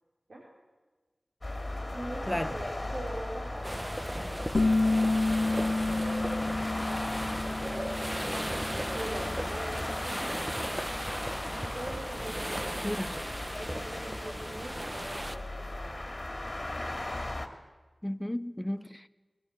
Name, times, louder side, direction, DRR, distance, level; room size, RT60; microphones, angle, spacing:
sound 1, 1.4-17.5, left 1 dB, 40° left, 2.7 m, -38 dB
voice 1, 1.9-4.6 5.1-6.3 6.9-7.2 7.5-8.0 8.9-10.9 11.3-13.0 13.6-16.1, right 1 dB, 75° right, 4.8 m, -42 dB
sound 2, 3.6-15.4, right 1 dB, 20° right, 1.2 m, -37 dB
sound 3, 4.5-9.9, left 2 dB, 60° left, 0.8 m, -30 dB
voice 2, 12.8-13.1 18.0-19.1, left 1 dB, 15° left, 1.0 m, -33 dB
21.5 x 21.0 x 8.3 m
wide cardioid pair, 40°, 0 cm